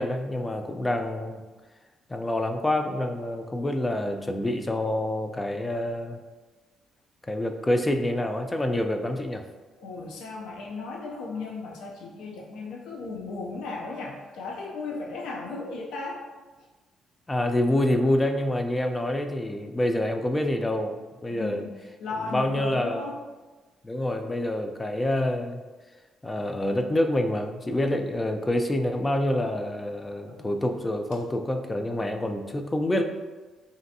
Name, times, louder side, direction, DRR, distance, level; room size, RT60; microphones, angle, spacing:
voice 1, 0.0-1.4 2.1-6.2 7.3-9.4 17.3-21.6 22.3-23.0 23.8-25.6 26.2-33.0, left 1 dB, 20° left, 5 dB, 0.3 m, -27 dB
voice 2, 9.8-16.2 16.6-16.7 21.3-23.2 30.2-30.5, left 3 dB, 85° left, -1 dB, 0.4 m, -36 dB
3.1 x 2.6 x 2.6 m, 1.3 s
cardioid pair, 90°, 0 cm